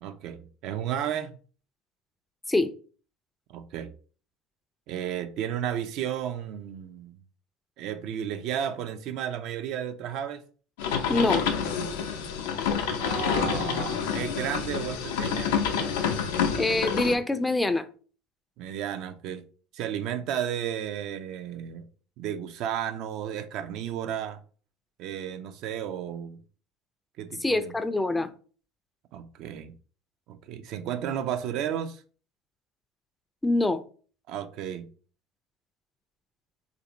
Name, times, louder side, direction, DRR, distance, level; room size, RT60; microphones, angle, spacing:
voice 1, 0.0-1.4 3.5-3.9 4.9-7.2 7.8-10.4 13.0-15.6 18.6-19.4 19.7-21.9 22.2-24.4 25.0-26.4 27.2-27.7 29.1-29.7 30.3-32.0 34.3-34.9, right 9 dB, 60° right, 0.4 m, -33 dB
sound 1, 10.8-17.2, left 7 dB, 80° left, 0.5 m, -28 dB
voice 2, 11.1-11.4 16.5-17.9 27.4-28.3 33.4-33.8, left 2 dB, 10° left, 0.4 m, -25 dB
3.2 x 2.6 x 2.9 m
hypercardioid pair, 85°, 0 cm